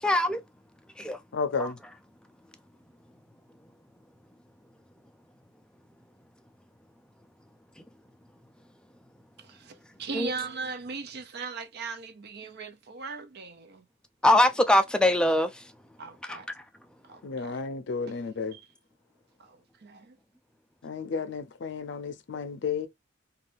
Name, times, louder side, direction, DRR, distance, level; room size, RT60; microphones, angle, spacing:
voice 1, 0.0-0.4 1.0-1.2 1.6-1.7 10.1-10.3 14.2-15.6 16.3-16.4, left 1 dB, 5° left, 0.3 m, -22 dB
voice 2, 1.3-1.8 17.2-18.5 20.8-22.9, left 5 dB, 65° left, 0.5 m, -32 dB
voice 3, 9.4-13.9 16.0-16.5 17.0-17.6 18.1-18.7 19.4-20.2, right 4 dB, 55° right, 0.5 m, -39 dB
2.5 x 2.3 x 3.4 m
head